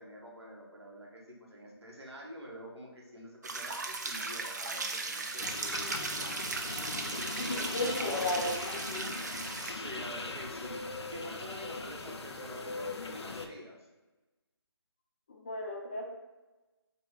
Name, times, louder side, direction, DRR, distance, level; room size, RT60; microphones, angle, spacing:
voice 1, 0.0-8.5 8.9-9.1 9.5-13.8, equal, 75° right, -1 dB, 1.1 m, -47 dB
sound 1, 3.4-9.7, right 3 dB, 40° right, 0.3 m, -37 dB
sound 2, 5.4-13.5, left 3 dB, 90° left, 0.4 m, -40 dB
voice 2, 7.4-8.6 15.3-16.0, left 2 dB, 25° left, -2 dB, 0.4 m, -34 dB
4.2 x 2.2 x 3.6 m, 1.1 s
figure-of-eight pair, 155°, 14 cm